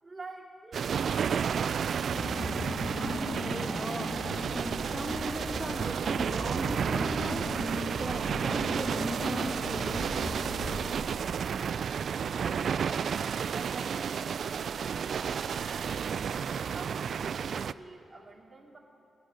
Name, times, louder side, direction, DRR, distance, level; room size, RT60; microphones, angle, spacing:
voice 1, 0.0-2.1 12.3-18.8, right 3 dB, 25° right, -3 dB, 2.6 m, -48 dB
sound 1, 0.7-17.7, right 7 dB, 70° right, 0.3 m, -32 dB
Car / Engine, 2.1-11.3, left 1 dB, 55° left, 2.7 m, -38 dB
voice 2, 2.8-10.4, equal, ahead, 8 dB, 0.4 m, -40 dB
18.5 x 10.5 x 6.3 m, 2.7 s
cardioid pair, 95°, 0 cm